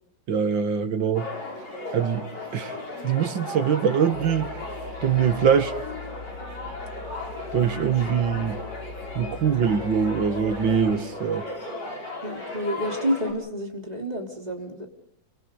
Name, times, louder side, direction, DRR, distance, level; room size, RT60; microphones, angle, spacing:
voice 1, 0.3-1.3 1.9-2.8 3.0-4.5 5.0-5.7 7.5-8.6 9.1-11.5, right 7 dB, 80° right, 2.3 m, -23 dB
sound 1, 1.1-13.3, left 2 dB, 60° left, 6.8 m, -36 dB
sound 2, 4.1-10.9, left 3 dB, 90° left, 4.5 m, -42 dB
voice 2, 12.2-14.9, equal, 20° right, 3.4 m, -29 dB
28.5 x 25.0 x 5.2 m
omnidirectional pair, 2.0 m